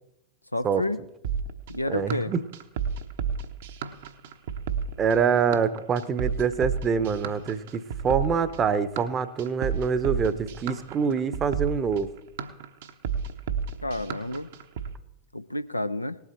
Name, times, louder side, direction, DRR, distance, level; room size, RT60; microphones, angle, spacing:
voice 1, 0.5-1.0 1.7-2.3 13.8-14.5 15.3-16.2, left 1 dB, 85° left, 12 dB, 0.5 m, -30 dB
sound 1, 1.2-14.9, right 7 dB, 55° right, 1.0 m, -31 dB
voice 2, 1.9-2.4 5.0-12.1, right 6 dB, 25° right, 13 dB, 0.8 m, -25 dB
19.0 x 8.1 x 4.4 m, 0.86 s
figure-of-eight pair, 90°, 0 cm